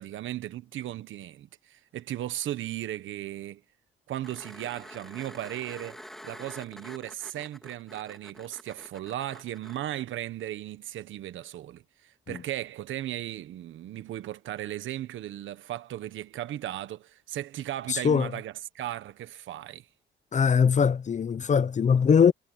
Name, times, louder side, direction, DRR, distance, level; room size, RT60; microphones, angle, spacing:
voice 1, 0.0-3.6 4.1-19.9, right 13 dB, 75° right, 1.3 m, -36 dB
sound 1, 4.2-9.8 12.5-12.6, equal, ahead, 3.8 m, -47 dB
voice 2, 17.9-18.3 20.3-22.3, left 6 dB, 40° left, 0.8 m, -21 dB
cardioid pair, 90°, 20 cm